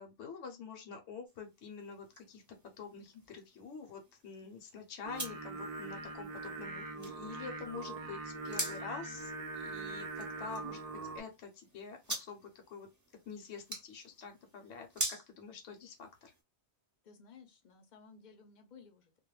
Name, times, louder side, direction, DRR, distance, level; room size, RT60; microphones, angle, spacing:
voice 1, 0.0-10.8 11.1-12.9 13.3-16.3, left 5 dB, 70° left, 0.9 m, -47 dB
sound 1, 1.3-16.4, right 1 dB, 20° right, 0.6 m, -46 dB
Singing, 5.0-11.2, right 3 dB, 70° right, 0.3 m, -42 dB
voice 2, 17.0-19.2, left 5 dB, 50° left, 0.6 m, -57 dB
2.3 x 2.1 x 3.0 m
omnidirectional pair, 1.2 m